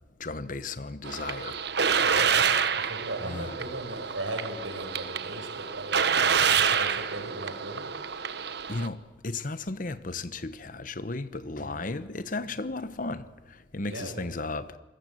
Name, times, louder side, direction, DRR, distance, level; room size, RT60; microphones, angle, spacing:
voice 1, 0.2-1.6 3.3-3.4 8.7-14.8, left 3 dB, 45° left, 1.1 m, -35 dB
sound 1, 1.0-8.9, right 7 dB, 60° right, 1.3 m, -27 dB
voice 2, 2.0-7.9 11.6-11.8 13.9-14.3, right 1 dB, 80° right, 6.4 m, -38 dB
27.5 x 21.5 x 7.9 m
head